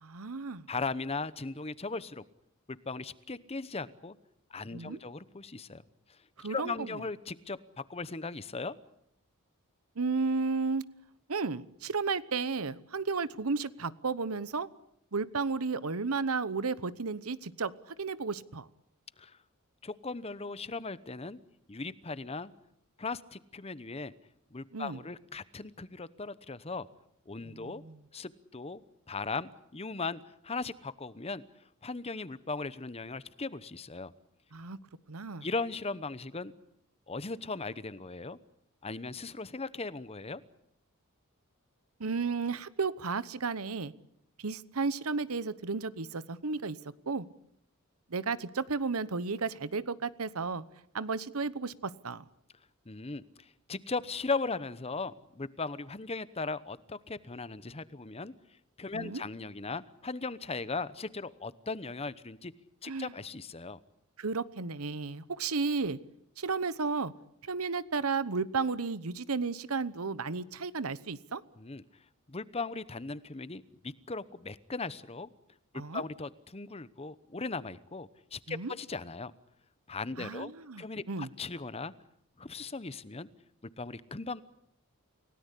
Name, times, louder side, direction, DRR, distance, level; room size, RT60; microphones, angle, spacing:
voice 1, 0.0-0.6 4.7-5.0 6.4-7.0 10.0-10.8 11.3-14.7 15.1-18.7 24.7-25.0 27.5-28.0 34.5-34.8 35.1-35.5 42.0-43.9 44.4-46.8 47.1-47.3 48.1-50.6 50.9-52.2 58.9-59.2 62.9-63.1 64.2-66.0 66.4-67.1 67.4-71.4 75.7-76.0 78.5-78.7 80.2-81.3, right 4 dB, 90° right, 17 dB, 1.0 m, -33 dB
voice 2, 0.7-2.2 2.7-4.2 4.5-5.8 6.4-8.8 19.2-19.4 19.8-21.4 21.7-22.5 23.0-24.1 24.5-26.9 27.3-27.8 28.1-28.8 29.1-31.4 31.8-34.1 35.4-36.5 37.1-38.4 38.8-40.4 52.9-58.3 58.8-62.5 62.8-63.8 71.6-71.8 72.3-75.3 75.9-79.3 79.9-81.9 82.4-83.3 83.8-84.4, left 3 dB, 30° left, 16 dB, 0.9 m, -38 dB
29.0 x 17.5 x 8.4 m, 0.73 s
head